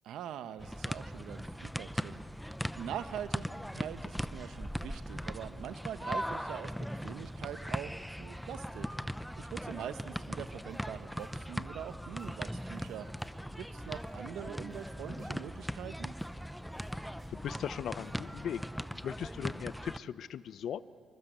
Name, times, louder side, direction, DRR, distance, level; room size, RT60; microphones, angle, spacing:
voice 1, 0.0-2.1 2.8-3.5 3.7-6.7 7.0-7.9 8.2-8.9 9.4-13.1 13.5-16.1, right 10 dB, 80° right, 12 dB, 1.0 m, -43 dB
sound 1, 0.6-20.0, equal, ahead, 0.7 m, -39 dB
sound 2, 10.7-11.4 11.7-14.2 14.6-16.5 16.7-18.2 18.5-18.7, right 1 dB, 35° right, 7.6 m, -64 dB
voice 2, 17.3-18.6 19.0-20.8, left 9 dB, 65° left, 15 dB, 0.7 m, -38 dB
27.0 x 23.5 x 8.1 m, 2.4 s
cardioid pair, 90°, 0 cm